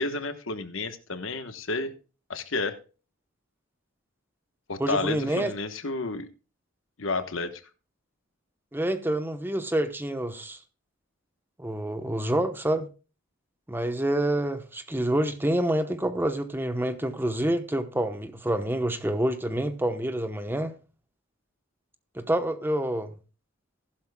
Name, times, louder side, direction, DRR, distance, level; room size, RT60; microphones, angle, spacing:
voice 1, 0.0-1.9 2.3-2.8 4.7-6.3 7.0-7.6, left 3 dB, 70° left, 1.1 m, -31 dB
voice 2, 4.8-5.5 8.7-10.6 11.6-12.9 13.7-20.7 22.2-23.1, right 1 dB, 10° right, 0.9 m, -27 dB
15.0 x 12.0 x 2.2 m
head